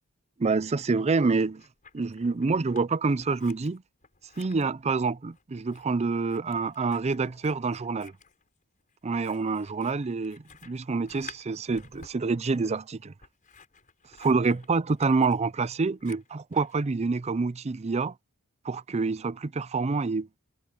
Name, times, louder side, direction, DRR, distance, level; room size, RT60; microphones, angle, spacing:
voice 1, 0.4-1.6 1.9-3.8 4.4-8.1 9.0-13.1 14.2-18.1 18.6-20.3, right 4 dB, 30° right, 0.5 m, -27 dB
Scissors, 1.3-2.9 3.2-16.8, left 5 dB, 40° left, 5.5 m, -53 dB
head